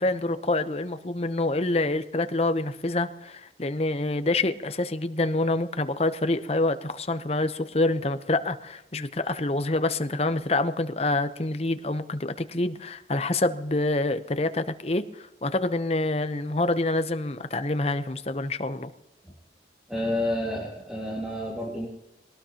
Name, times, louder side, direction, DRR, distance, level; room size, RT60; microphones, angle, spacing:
voice 1, 0.0-18.9, left 2 dB, 35° left, 10 dB, 0.8 m, -27 dB
voice 2, 19.9-21.9, left 1 dB, 5° right, -4 dB, 2.0 m, -30 dB
23.0 x 18.0 x 2.9 m, 0.91 s
head